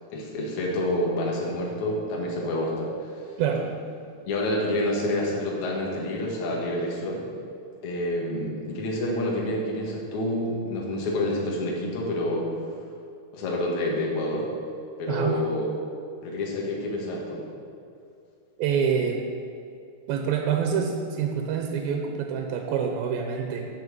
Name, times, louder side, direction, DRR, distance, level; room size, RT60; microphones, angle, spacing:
voice 1, 0.1-3.2 4.3-7.2 7.8-12.5 13.3-14.5 15.0-15.8 16.2-17.4, left 1 dB, 55° left, -2 dB, 2.9 m, -28 dB
voice 2, 3.4-3.7 15.1-15.4 18.6-19.3 20.1-23.7, right 7 dB, 90° right, 3 dB, 2.8 m, -26 dB
12.5 x 5.6 x 8.1 m, 2.5 s
omnidirectional pair, 4.1 m